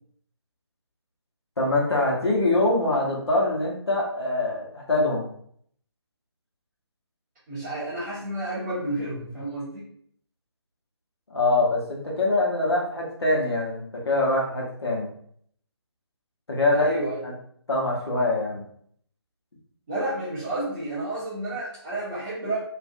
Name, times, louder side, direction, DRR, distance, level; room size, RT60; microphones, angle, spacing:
voice 1, 1.6-5.3 11.3-15.1 16.5-16.9 17.2-17.3 17.7-18.6, left 2 dB, 65° left, -2 dB, 0.9 m, -24 dB
voice 2, 7.5-9.9 16.7-17.2 19.9-22.6, right 2 dB, 25° right, -10 dB, 1.1 m, -30 dB
2.5 x 2.4 x 2.5 m, 0.63 s
figure-of-eight pair, 150°, 14 cm